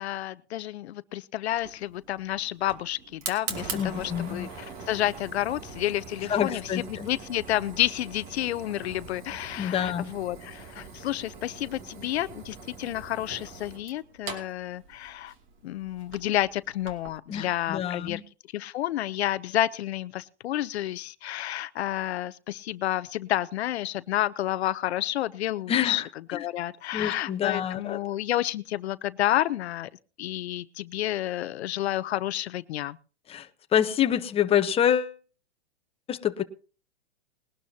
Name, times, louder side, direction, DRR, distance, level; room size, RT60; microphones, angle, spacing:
voice 1, 0.0-6.6 6.9-15.3 15.6-18.2 18.5-26.0 26.3-29.9 30.2-33.0, left 13 dB, 70° left, 15 dB, 0.7 m, -30 dB
Fire, 1.5-17.2, right 5 dB, 35° right, 2.5 m, -42 dB
voice 2, 3.7-4.5 6.3-7.1 9.6-10.1 17.3-18.2 25.7-26.1 26.3-26.5 26.9-28.0 33.3-35.2 36.1-36.4, left 9 dB, 15° left, 7 dB, 1.0 m, -27 dB
20.5 x 12.0 x 2.8 m, 0.37 s
hypercardioid pair, 130°, 33 cm